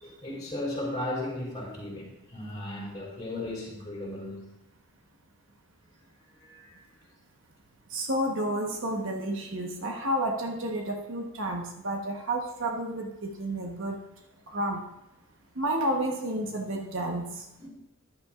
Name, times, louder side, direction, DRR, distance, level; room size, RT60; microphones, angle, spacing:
voice 1, 0.0-4.5 6.4-6.8 17.6-17.7, left 1 dB, 20° left, -4 dB, 3.7 m, -36 dB
voice 2, 7.9-13.9 14.5-14.8 15.6-17.4, right 1 dB, 60° right, 2 dB, 1.2 m, -30 dB
14.5 x 10.5 x 2.5 m, 0.92 s
head